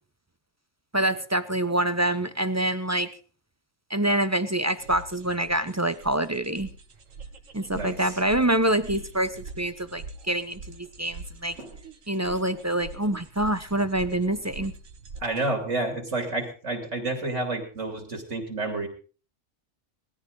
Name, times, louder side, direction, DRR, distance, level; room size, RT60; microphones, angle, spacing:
voice 1, 0.9-3.1 3.9-6.7 7.5-11.5 12.1-14.7, right 1 dB, 15° right, 12 dB, 0.7 m, -26 dB
sound 1, 4.8-15.2, right 4 dB, 85° right, 1.8 m, -44 dB
voice 2, 7.7-8.1 11.6-11.7 15.2-18.9, right 2 dB, 70° right, 4 dB, 3.1 m, -30 dB
19.5 x 14.5 x 3.9 m, 0.37 s
omnidirectional pair, 1.3 m